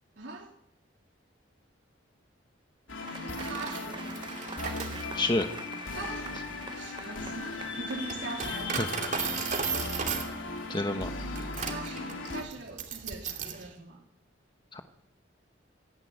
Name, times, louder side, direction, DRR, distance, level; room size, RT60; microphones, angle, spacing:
voice 1, 0.2-0.5 3.1-4.3 5.9-6.3 6.7-8.8 11.6-14.0, right 3 dB, 65° right, 0 dB, 3.0 m, -42 dB
sound 1, 2.9-12.4, left 3 dB, 85° left, 3.6 m, -37 dB
Applause / Crowd, 3.0-9.8, right 4 dB, 25° right, 0.9 m, -46 dB
Coin (dropping), 3.2-13.7, right 6 dB, 40° right, 2.8 m, -37 dB
voice 2, 5.1-5.5 8.8-8.9 10.7-11.1 14.7-14.8, left 2 dB, 25° left, 6 dB, 1.1 m, -28 dB
25.5 x 11.0 x 9.4 m, 0.70 s
head